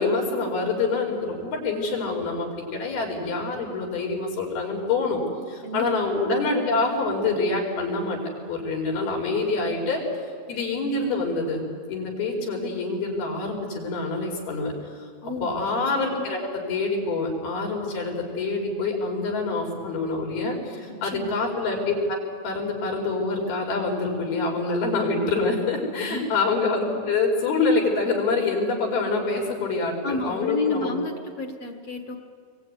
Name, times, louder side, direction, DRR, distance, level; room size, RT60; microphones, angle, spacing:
voice 1, 0.0-5.2 5.5-8.2 8.5-10.0 10.5-14.7 15.2-22.0 22.4-30.9, left 3 dB, 90° left, 0 dB, 6.6 m, -26 dB
voice 2, 15.2-15.6 20.9-21.3 26.0-26.3 30.0-32.2, left 2 dB, 50° left, 5 dB, 2.2 m, -30 dB
27.0 x 22.5 x 9.6 m, 2.1 s
omnidirectional pair, 4.3 m